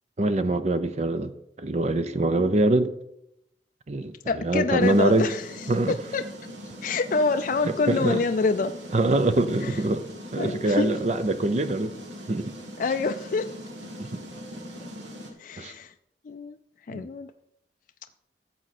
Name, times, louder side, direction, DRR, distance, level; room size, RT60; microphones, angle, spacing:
voice 1, 0.2-1.3 1.6-2.9 3.9-5.3 5.7-5.9 7.6-8.2 8.9-10.1 10.3-12.0 12.3-12.5 14.0-14.2 15.6-15.7 16.9-17.0, right 2 dB, 40° right, 0.5 m, -24 dB
voice 2, 4.3-5.5 5.9-6.3 6.8-8.7 9.6-9.8 10.4-11.0 12.8-13.5 15.4-15.9 16.2-16.6 16.9-17.3, left 4 dB, 45° left, 0.4 m, -26 dB
sound 1, 4.8-15.3, equal, 85° right, 1.9 m, -41 dB
13.5 x 7.5 x 4.2 m
head